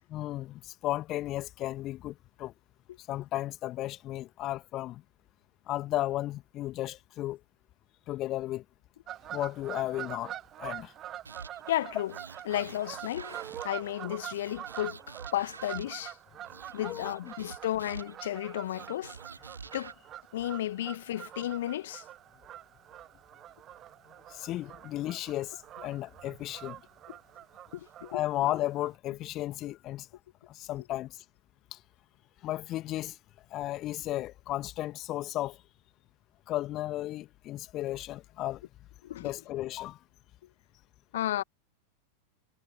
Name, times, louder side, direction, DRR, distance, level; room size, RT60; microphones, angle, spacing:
voice 1, 0.1-2.5 3.0-5.0 5.7-7.4 8.1-8.6 9.3-10.9 16.8-17.2 24.3-26.8 28.1-30.1 30.5-31.2 31.7-31.8 32.4-33.2 33.5-35.6 36.5-38.6 39.2-40.0, left 15 dB, 35° left, 1.7 m, -34 dB
Fowl / Bird vocalization bird call bird song, 9.1-28.9, right 12 dB, 30° right, 0.9 m, -45 dB
sound 1, 11.2-11.7 12.1-13.9 14.3-16.1 16.4-18.3 18.6-19.9, right 4 dB, 75° right, 5.0 m, -48 dB
voice 2, 11.7-12.1 12.5-16.2 16.7-19.1 19.7-19.9 20.3-22.0 27.1-27.2 27.7-28.2 39.0-39.3 41.1-41.4, left 13 dB, 60° left, 1.3 m, -33 dB
figure-of-eight pair, 90°, 0 cm